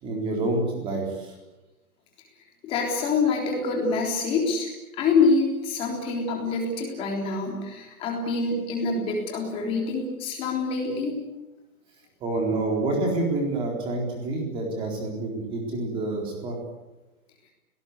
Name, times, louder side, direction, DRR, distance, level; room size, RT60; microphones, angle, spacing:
voice 1, 0.0-1.3 12.2-16.6, right 2 dB, 10° right, 1 dB, 4.0 m, -28 dB
voice 2, 2.6-4.7 5.0-11.2, left 4 dB, 10° left, 1 dB, 3.6 m, -26 dB
30.0 x 18.5 x 8.2 m, 1.1 s
hypercardioid pair, 180°, 44 cm